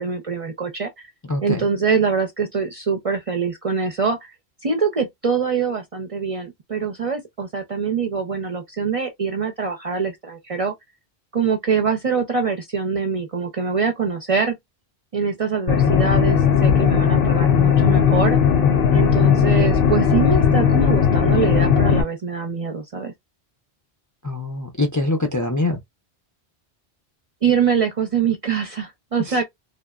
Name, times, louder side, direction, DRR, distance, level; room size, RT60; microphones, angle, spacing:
voice 1, 0.0-1.1 1.4-4.3 4.6-10.7 11.3-14.6 15.1-18.4 18.9-23.1 27.4-29.4, right 5 dB, 45° right, 0.5 m, -24 dB
voice 2, 1.3-1.6 24.2-25.8 29.2-29.4, left 2 dB, 25° left, 0.4 m, -24 dB
sound 1, 15.7-22.0, left 7 dB, 65° left, 0.8 m, -17 dB
3.3 x 2.1 x 2.3 m
omnidirectional pair, 1.1 m